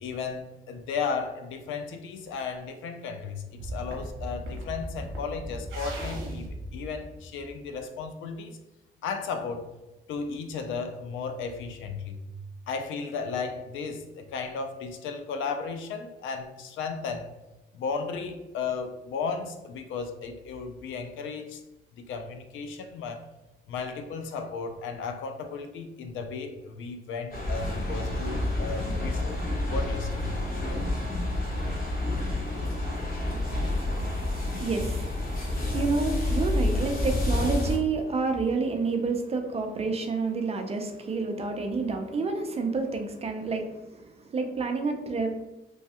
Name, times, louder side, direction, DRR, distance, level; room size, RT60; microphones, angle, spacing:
voice 1, 0.0-8.6 9.0-9.7 10.1-12.3 12.7-17.3 17.7-21.6 22.0-23.3 23.7-29.4 29.7-30.3, left 5 dB, 80° left, 7 dB, 0.4 m, -35 dB
sound 1, 3.6-7.8, equal, 75° right, 0.8 m, -37 dB
sound 2, 27.3-37.8, left 1 dB, 45° left, 1.0 m, -29 dB
voice 2, 32.1-44.0 44.3-45.4, right 4 dB, 30° right, 5 dB, 0.5 m, -30 dB
3.1 x 2.3 x 2.8 m, 1.0 s
cardioid pair, 90°, 20 cm